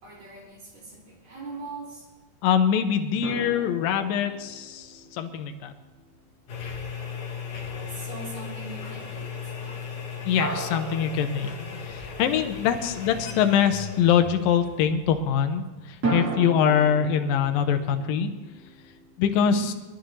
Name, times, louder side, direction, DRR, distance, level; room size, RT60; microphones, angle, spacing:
voice 1, 0.0-2.1 7.5-10.2 12.7-13.0 19.4-19.8, right 3 dB, 65° right, -6 dB, 6.9 m, -42 dB
voice 2, 2.4-5.7 10.2-11.5 11.8-18.3 19.2-19.7, left 8 dB, 80° left, 7 dB, 2.6 m, -23 dB
sound 1, 3.2-6.6 10.4-12.4 16.0-19.1, right 3 dB, 25° right, 2.4 m, -35 dB
sound 2, 6.5-15.6, left 6 dB, 50° left, 2.8 m, -37 dB
21.0 x 12.5 x 3.3 m, 1.2 s
omnidirectional pair, 4.1 m